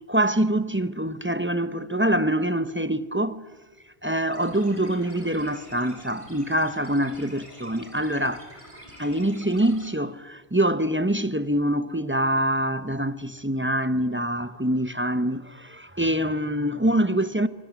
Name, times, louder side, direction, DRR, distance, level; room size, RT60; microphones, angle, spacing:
voice 1, 0.1-3.4 4.0-8.4 9.0-17.5, right 1 dB, 10° right, 0.8 m, -25 dB
sound 1, 4.3-9.9, equal, 30° right, 6.6 m, -47 dB
25.5 x 21.0 x 9.3 m
omnidirectional pair, 1.1 m